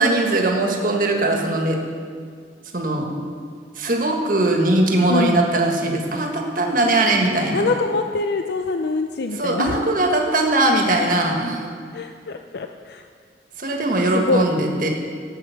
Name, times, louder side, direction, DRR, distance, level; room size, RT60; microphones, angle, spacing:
voice 1, 0.0-1.8 2.7-3.1 3.8-7.7 9.3-11.7 13.6-14.9, right 2 dB, 50° right, 1 dB, 1.6 m, -20 dB
voice 2, 5.1-5.4 7.5-9.7 11.9-13.0 14.1-14.5, left 3 dB, 60° left, 6 dB, 0.5 m, -24 dB
15.0 x 8.2 x 5.8 m, 2.1 s
head